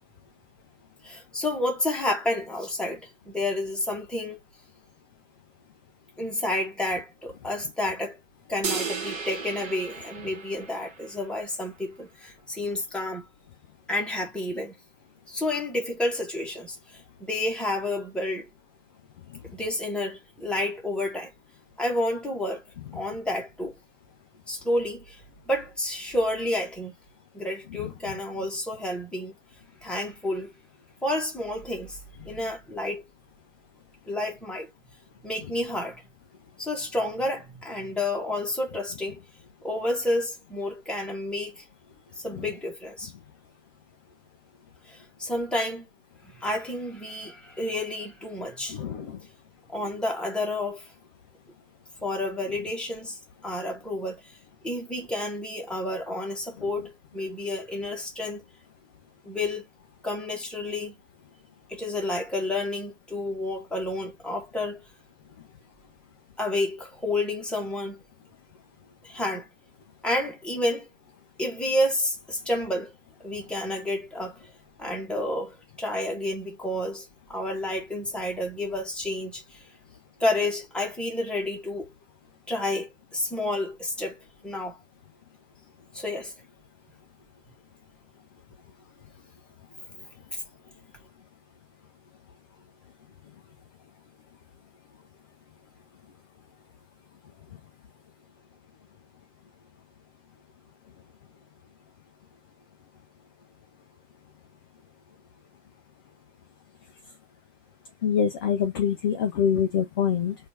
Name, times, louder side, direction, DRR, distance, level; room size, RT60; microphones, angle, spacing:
voice 1, 1.0-4.4 6.2-8.2 8.5-13.2 13.9-14.7 15.3-17.0 17.3-18.5 19.5-21.3 21.8-22.6 22.9-23.7 24.5-25.2 25.5-26.9 27.3-29.3 29.8-30.5 31.0-32.0 32.3-33.0 34.1-34.7 35.2-36.0 36.6-39.2 39.6-41.6 42.2-43.1 44.8-45.9 46.3-48.8 49.7-50.9 52.0-54.2 54.6-58.4 59.2-59.7 60.0-61.0 61.7-64.8 66.4-68.0 69.0-69.5 70.0-70.9 71.4-72.9 73.2-74.5 74.8-79.6 80.2-81.9 82.5-84.8 85.9-86.3, left 1 dB, ahead, 1.2 m, -30 dB
sound 1, 8.6-11.2, right 5 dB, 20° right, 1.1 m, -34 dB
voice 2, 48.7-49.2 56.6-56.7 108.0-110.4, left 8 dB, 20° left, 0.4 m, -26 dB
4.2 x 2.7 x 3.3 m
figure-of-eight pair, 120°, 38 cm